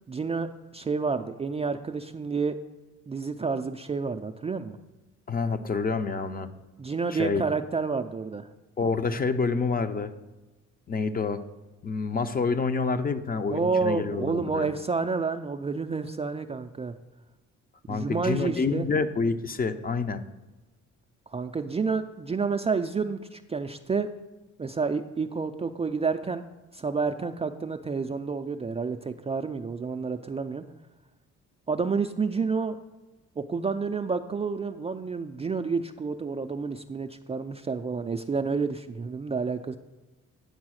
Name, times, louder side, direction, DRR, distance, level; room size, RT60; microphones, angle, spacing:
voice 1, 0.1-2.6 3.1-4.8 6.8-8.5 13.5-16.9 17.9-18.9 21.3-24.1 24.6-26.4 26.7-30.6 31.7-32.8 33.4-39.8, right 4 dB, 20° right, 7 dB, 0.3 m, -29 dB
voice 2, 5.3-6.5 7.1-7.4 8.8-10.1 10.9-11.4 11.8-14.7 17.9-20.2, left 4 dB, 30° left, 10 dB, 0.5 m, -28 dB
9.5 x 4.0 x 6.3 m, 1.1 s
cardioid pair, 90°, 30 cm